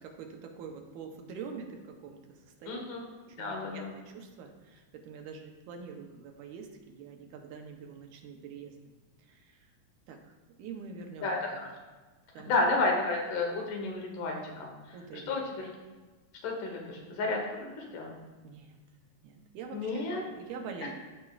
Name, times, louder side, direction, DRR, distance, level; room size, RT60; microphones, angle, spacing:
voice 1, 0.0-2.8 3.3-8.8 9.2-9.7 10.1-10.3 10.6-11.7 12.3-12.6 14.5-14.7 14.9-15.4 18.4-18.8 19.2-20.9, right 5 dB, 80° right, 3 dB, 2.2 m, -45 dB
voice 2, 2.7-3.1 3.4-4.0 11.2-11.7 12.5-14.7 15.1-15.7 16.4-18.2 19.7-20.2, left 3 dB, 85° left, 0 dB, 2.8 m, -31 dB
13.5 x 5.1 x 2.4 m, 1.3 s
omnidirectional pair, 3.5 m